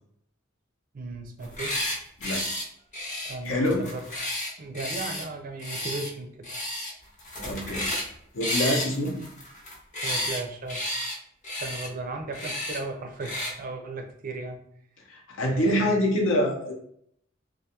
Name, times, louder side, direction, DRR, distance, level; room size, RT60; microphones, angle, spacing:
voice 1, 0.9-1.9 3.3-4.0 4.6-6.5 9.0-9.3 10.0-10.8 11.6-14.6 15.5-16.0, right 3 dB, 45° right, 4 dB, 0.4 m, -36 dB
sound 1, 1.4-2.0 2.2-2.6 2.9-5.2 5.6-6.1 6.4-6.9 7.2-8.1 8.4-10.4 10.7-11.2 11.4-11.9 12.3-12.8 13.2-13.5, left 1 dB, 40° left, 0.6 m, -32 dB
voice 2, 3.4-3.8 7.4-7.9 8.3-9.1 15.1-16.7, left 1 dB, 75° left, 1 dB, 0.6 m, -25 dB
2.4 x 2.2 x 2.8 m, 0.67 s
head